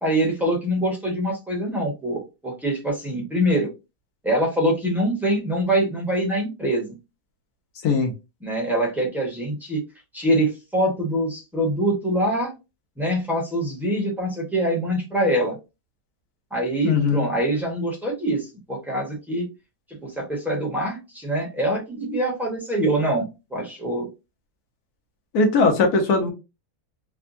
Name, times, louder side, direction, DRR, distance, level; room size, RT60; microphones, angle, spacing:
voice 1, 0.0-3.7 4.2-6.9 8.4-9.8 10.1-12.5 13.0-15.6 16.5-19.4 20.0-24.1, right 1 dB, ahead, -2 dB, 0.8 m, -24 dB
voice 2, 16.8-17.3 25.3-26.3, left 4 dB, 80° left, 3 dB, 1.3 m, -19 dB
3.5 x 2.3 x 2.5 m, 0.27 s
omnidirectional pair, 1.6 m